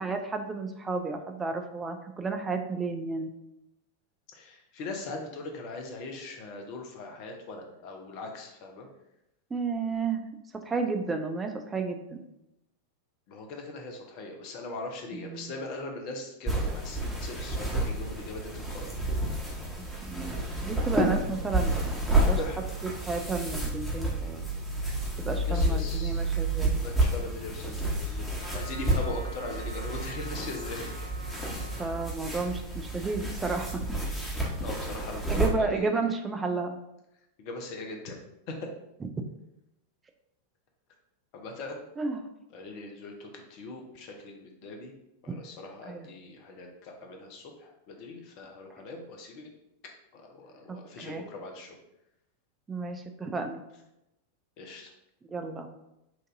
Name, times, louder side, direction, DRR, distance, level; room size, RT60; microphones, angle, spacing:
voice 1, 0.0-3.3 9.5-10.2 10.6-12.2 15.1-15.5 20.0-22.4 22.8-24.4 25.2-26.8 31.8-33.8 35.3-36.8 42.0-42.2 45.3-45.4 45.9-46.1 50.7-51.3 52.7-53.6 55.3-55.7, right 4 dB, 15° right, 5 dB, 0.4 m, -32 dB
voice 2, 4.3-8.9 13.3-19.2 22.3-22.6 25.2-26.3 26.7-30.9 34.6-35.9 37.4-38.2 38.5-38.6 41.3-41.8 42.5-44.9 45.2-49.5 50.1-51.8 54.6-54.9, left 2 dB, 45° left, 3 dB, 0.8 m, -40 dB
sound 1, 16.5-35.5, right 1 dB, ahead, 1.2 m, -30 dB
Trumpet, 28.4-32.1, right 1 dB, 60° right, 0.9 m, -46 dB
5.9 x 2.6 x 2.6 m, 0.87 s
figure-of-eight pair, 90°, 0 cm